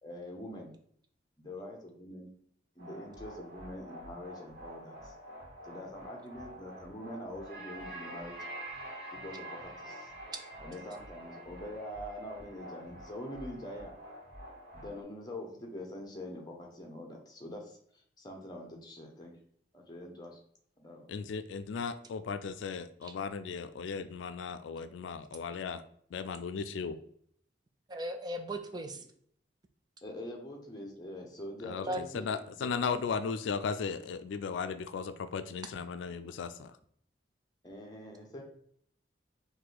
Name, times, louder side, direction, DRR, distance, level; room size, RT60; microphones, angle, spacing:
voice 1, 0.0-0.7 1.4-2.3 2.8-5.1 5.6-8.4 9.2-10.1 10.6-13.9 14.7-17.8 18.2-19.3 19.7-20.4 20.8-21.1 30.0-32.3 32.5-33.1 37.6-38.4, left 1 dB, 20° left, 1 dB, 0.9 m, -44 dB
sound 1, 2.8-15.0, right 1 dB, 55° right, 1.4 m, -47 dB
voice 2, 21.1-25.8 26.1-27.0 31.6-36.8, left 5 dB, 90° left, 11 dB, 0.4 m, -36 dB
voice 3, 27.9-29.0 31.8-32.0, right 1 dB, 20° right, 6 dB, 0.3 m, -37 dB
4.7 x 2.6 x 3.9 m, 0.63 s
head